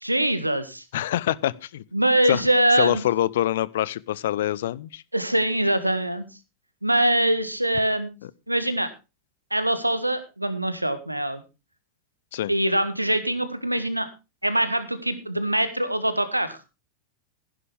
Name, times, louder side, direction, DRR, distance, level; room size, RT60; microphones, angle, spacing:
voice 1, 0.0-0.8 1.9-3.0 5.1-6.2 6.8-8.1 8.5-8.9 9.5-11.4 12.5-14.1 14.4-16.7, right 1 dB, 85° right, 1.6 m, -23 dB
voice 2, 0.9-1.8 2.3-2.4 2.8-5.0 12.3-12.5, left 13 dB, 60° left, 0.6 m, -25 dB
15.5 x 11.0 x 3.4 m
figure-of-eight pair, 90°, 0 cm